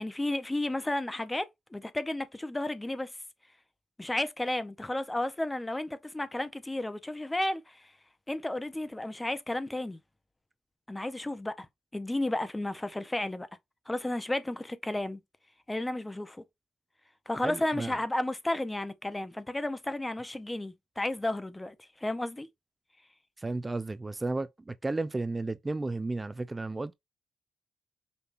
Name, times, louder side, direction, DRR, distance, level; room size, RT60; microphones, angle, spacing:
voice 1, 0.0-3.1 4.0-7.9 8.3-10.0 10.9-11.7 11.9-13.5 13.9-15.2 15.7-16.4 17.3-22.5, left 1 dB, 15° left, 0.7 m, -33 dB
voice 2, 17.4-18.0 23.4-26.9, right 2 dB, 25° right, 0.4 m, -33 dB
5.3 x 2.7 x 2.6 m
cardioid pair, 60°, 0 cm